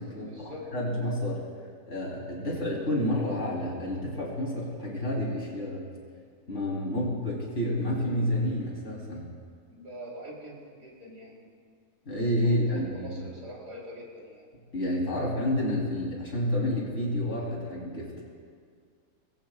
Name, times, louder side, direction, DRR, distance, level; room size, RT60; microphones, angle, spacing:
voice 1, 0.2-0.7 2.4-2.6 9.8-11.5 12.4-14.5, equal, 80° right, -4 dB, 5.9 m, -44 dB
voice 2, 0.7-1.5 1.9-5.9 6.5-9.2 12.1-13.2 14.7-18.2, left 1 dB, 45° left, -4 dB, 4.1 m, -29 dB
25.0 x 21.5 x 2.5 m, 2.1 s
omnidirectional pair, 1.8 m